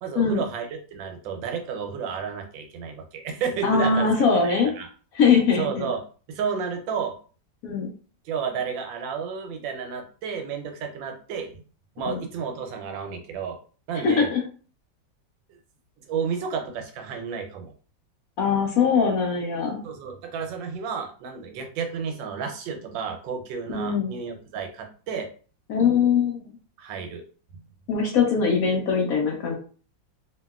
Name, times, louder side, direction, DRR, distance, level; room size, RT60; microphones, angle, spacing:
voice 1, 0.0-4.9 5.6-6.0 6.3-7.1 8.2-11.6 12.0-13.6 13.9-14.3 16.1-17.7 19.8-25.3 26.8-27.3 27.5-27.6, right 6 dB, 90° right, 4 dB, 1.4 m, -31 dB
voice 2, 3.6-4.7 5.1-5.9 7.6-7.9 12.0-12.2 14.0-14.4 18.4-19.8 23.7-24.1 25.7-26.4 27.9-29.6, left 5 dB, 65° left, 0 dB, 0.9 m, -22 dB
2.8 x 2.8 x 2.3 m, 0.40 s
omnidirectional pair, 2.0 m